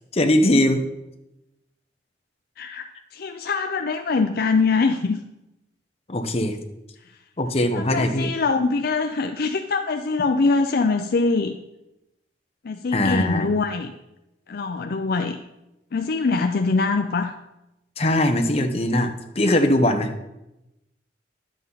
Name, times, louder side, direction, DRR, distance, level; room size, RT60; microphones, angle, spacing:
voice 1, 0.1-0.8 6.1-6.6 7.4-8.3 12.9-13.5 18.0-20.1, left 1 dB, 35° left, 5 dB, 0.9 m, -20 dB
voice 2, 2.6-5.2 7.7-11.6 12.6-13.9 14.5-15.4 15.9-17.3, left 4 dB, 60° left, 6 dB, 0.5 m, -23 dB
11.0 x 7.7 x 4.0 m, 0.92 s
head